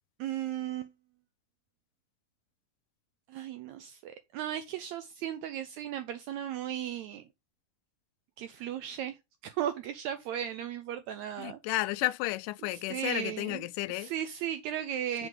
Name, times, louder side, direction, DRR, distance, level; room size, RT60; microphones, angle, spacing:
voice 1, 0.2-0.9 3.3-7.2 8.4-9.2 9.4-11.6 12.7-13.7 13.9-15.3, right 10 dB, 80° right, 1.6 m, -36 dB
voice 2, 11.4-14.1 15.2-15.3, left 18 dB, 85° left, 2.1 m, -32 dB
6.2 x 5.2 x 5.4 m
omnidirectional pair, 3.8 m